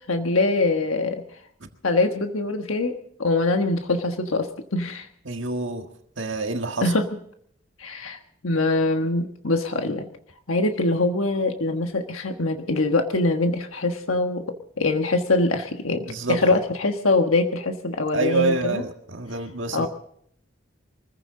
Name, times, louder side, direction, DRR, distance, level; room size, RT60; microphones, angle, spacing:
voice 1, 0.1-1.2 1.8-2.9 3.2-5.1 6.8-7.1 7.8-10.0 10.5-14.4 14.8-18.8 19.7-19.9, left 2 dB, 90° left, 5 dB, 1.4 m, -23 dB
voice 2, 5.3-5.9 6.2-6.9 16.1-16.6 18.1-19.9, right 3 dB, 65° right, 4 dB, 1.7 m, -27 dB
24.0 x 15.0 x 3.8 m, 0.65 s
head